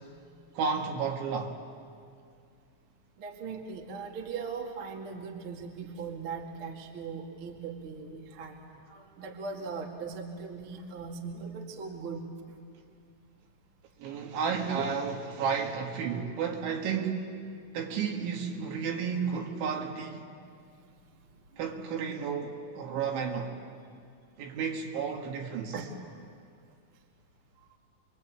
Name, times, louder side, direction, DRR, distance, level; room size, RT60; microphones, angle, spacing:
voice 1, 0.5-1.6 14.0-17.2 17.7-20.2 21.6-23.6 24.4-25.7, right 6 dB, 70° right, 4.1 m, -32 dB
voice 2, 3.2-8.6 8.9-12.2 25.7-25.9, right 5 dB, 40° right, 1.9 m, -39 dB
27.5 x 23.5 x 8.6 m
omnidirectional pair, 5.8 m